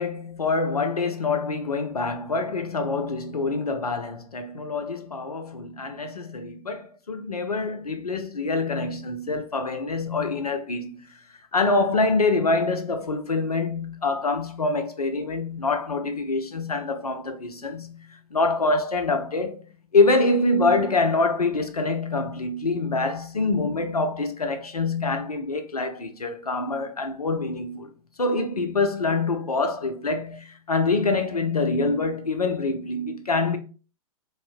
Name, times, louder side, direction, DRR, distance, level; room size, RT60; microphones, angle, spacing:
voice 1, 0.0-11.0 11.5-19.7 19.9-27.9 28.2-33.6, left 3 dB, 90° left, 0.6 m, -25 dB
3.4 x 2.7 x 2.4 m
figure-of-eight pair, 105°, 19 cm